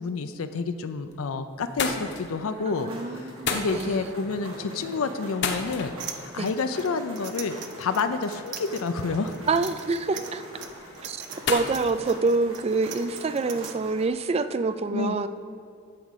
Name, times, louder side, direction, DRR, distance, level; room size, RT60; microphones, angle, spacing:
voice 1, 0.0-9.4 14.9-15.2, left 4 dB, 75° left, 9 dB, 0.5 m, -29 dB
sound 1, 0.7-1.3 1.6-13.2, left 4 dB, 55° left, 0.9 m, -37 dB
voice 2, 2.6-4.1 6.4-6.5 9.5-10.4 11.0-11.2 11.5-15.3, right 3 dB, 30° right, 12 dB, 0.3 m, -26 dB
sound 2, 2.7-14.1, right 1 dB, 70° right, 2.0 m, -44 dB
sound 3, 6.0-13.7, right 8 dB, 55° right, 0.7 m, -41 dB
11.0 x 4.9 x 7.3 m, 2.3 s
head